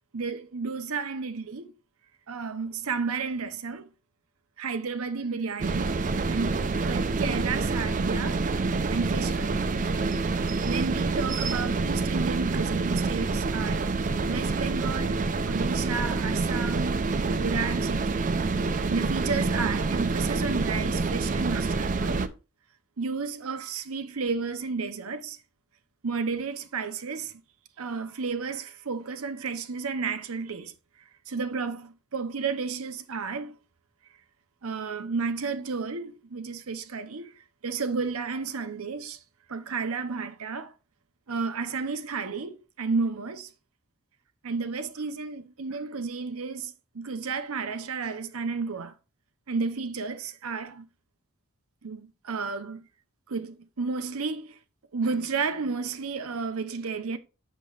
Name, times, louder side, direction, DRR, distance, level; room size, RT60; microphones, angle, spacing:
voice 1, 0.1-1.7 2.3-3.9 4.6-8.4 8.9-9.6 10.7-13.9 14.3-18.3 18.9-22.3 23.0-25.4 26.0-27.3 27.8-30.7 31.3-33.5 34.6-39.2 39.5-40.7 41.3-43.5 44.4-48.9 49.5-50.9 51.8-52.9 53.3-54.6 54.9-57.2, right 4 dB, 75° right, 0.8 m, -32 dB
sound 1, 5.6-22.3, right 3 dB, 35° right, 0.4 m, -27 dB
8.2 x 6.8 x 2.4 m
head